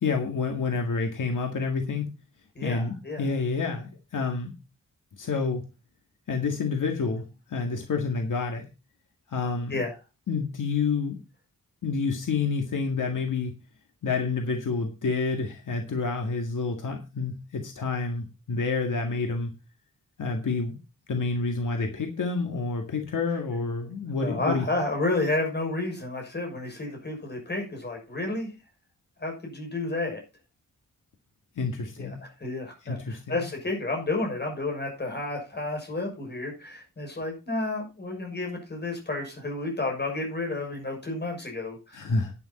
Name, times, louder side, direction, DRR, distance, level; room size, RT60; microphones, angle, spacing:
voice 1, 0.0-2.1 2.6-4.5 5.2-5.6 6.3-8.7 9.3-9.8 10.3-11.2 11.8-13.5 14.0-19.5 20.2-20.8 21.1-24.7 31.6-32.2 32.8-33.5 41.9-42.3, left 4 dB, 70° left, 4 dB, 2.0 m, -28 dB
voice 2, 2.5-3.3 9.7-9.9 24.2-28.5 29.2-30.2 32.0-32.1 32.4-42.1, left 2 dB, 30° left, 2 dB, 6.6 m, -31 dB
11.0 x 10.0 x 4.3 m, 0.29 s
wide cardioid pair, 160°, 33 cm